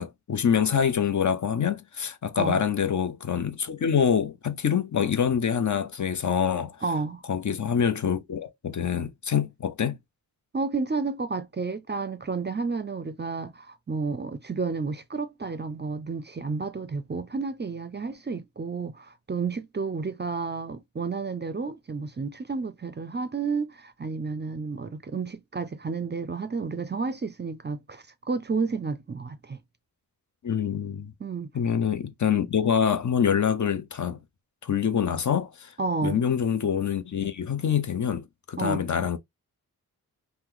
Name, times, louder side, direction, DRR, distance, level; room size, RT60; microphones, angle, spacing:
voice 1, 0.0-6.8 7.3-10.0 30.4-31.1 31.5-34.2 34.6-35.7 36.0-39.2, left 7 dB, 50° left, 0.7 m, -25 dB
voice 2, 6.8-7.2 10.5-29.6 31.2-31.5 35.8-36.2 38.6-38.8, right 4 dB, 30° right, 0.5 m, -31 dB
2.9 x 2.2 x 3.8 m
cardioid pair, 55°, 37 cm